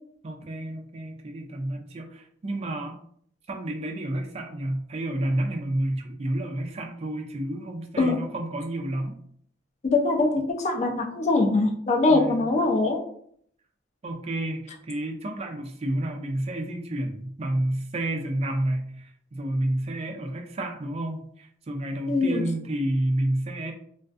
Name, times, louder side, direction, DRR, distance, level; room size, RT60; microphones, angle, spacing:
voice 1, 0.2-3.0 3.5-9.2 12.1-12.5 14.0-23.7, right 1 dB, 35° right, 3 dB, 0.4 m, -30 dB
voice 2, 9.9-13.0 22.1-22.5, left 3 dB, 40° left, 2 dB, 0.4 m, -22 dB
2.4 x 2.3 x 2.4 m, 0.63 s
head